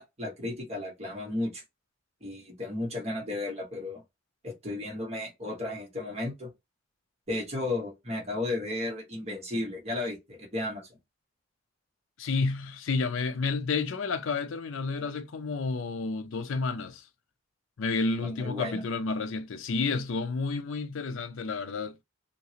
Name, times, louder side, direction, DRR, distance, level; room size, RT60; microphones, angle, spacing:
voice 1, 0.0-1.6 2.2-4.0 4.4-6.5 7.3-10.9 18.2-18.8, left 2 dB, 30° right, 1.3 m, -34 dB
voice 2, 12.2-17.1 17.8-22.0, left 4 dB, 75° left, 0.5 m, -30 dB
2.9 x 2.8 x 2.8 m
head